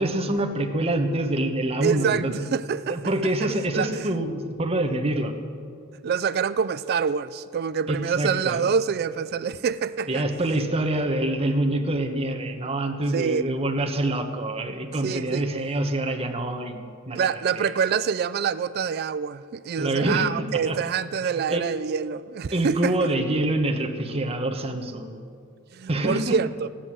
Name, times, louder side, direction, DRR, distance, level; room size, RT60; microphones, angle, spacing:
voice 1, 0.0-2.3 2.9-5.3 7.9-8.7 10.1-17.3 17.6-17.7 19.8-20.8 21.5-21.7 22.5-25.1 25.9-26.4, right 1 dB, 30° right, 1.1 m, -26 dB
voice 2, 1.8-3.0 3.7-4.1 6.0-10.2 13.1-13.5 15.0-15.5 17.2-23.1 25.7-26.7, right 6 dB, 50° right, 0.3 m, -26 dB
14.0 x 10.0 x 7.6 m
head